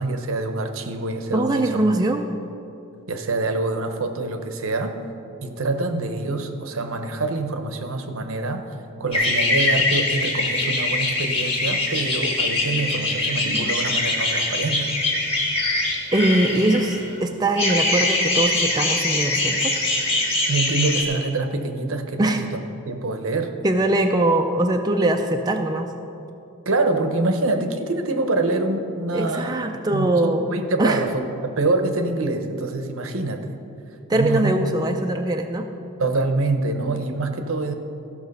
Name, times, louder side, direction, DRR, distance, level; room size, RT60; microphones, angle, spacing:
voice 1, 0.0-1.8 3.1-5.0 5.4-8.6 9.0-14.9 20.5-22.6 22.8-23.6 26.6-29.5 29.9-31.1 31.4-33.5 34.1-34.6 36.0-37.7, right 2 dB, 70° right, 7 dB, 0.8 m, -25 dB
voice 2, 1.3-2.2 16.1-19.8 22.2-22.4 23.6-25.9 29.1-30.5 30.8-31.0 34.1-35.7, right 1 dB, 20° right, 3 dB, 0.4 m, -21 dB
sound 1, 9.1-17.1 17.6-21.0, left 2 dB, 25° left, 1.7 m, -23 dB
14.5 x 6.0 x 5.3 m, 2.7 s
head